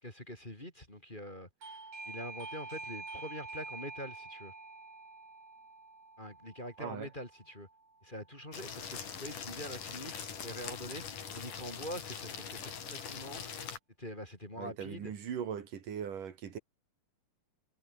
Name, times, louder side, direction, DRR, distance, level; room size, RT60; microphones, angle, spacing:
voice 1, 0.0-1.5 2.0-4.5 6.2-7.7 8.0-13.5 14.0-15.1, equal, 15° left, 4.3 m, -44 dB
Doorbell, 1.6-8.1, right 3 dB, 50° right, 9.0 m, -47 dB
voice 2, 6.8-7.1 14.6-16.6, right 8 dB, 75° right, 4.0 m, -40 dB
sound 1, 8.5-13.8, left 7 dB, 70° left, 4.7 m, -42 dB
omnidirectional pair, 3.8 m